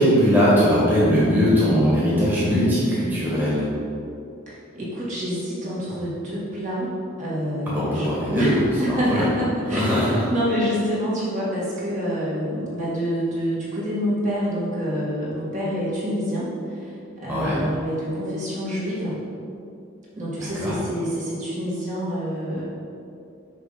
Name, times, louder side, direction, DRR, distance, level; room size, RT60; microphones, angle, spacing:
voice 1, 0.0-3.7 7.7-9.3 9.7-10.2 17.3-17.6 20.4-20.8, equal, 10° right, -9 dB, 1.8 m, -20 dB
voice 2, 4.5-6.9 7.2-16.9 17.2-19.2 20.2-22.6, equal, 35° right, -8 dB, 1.9 m, -27 dB
6.4 x 5.6 x 5.1 m, 2.5 s
head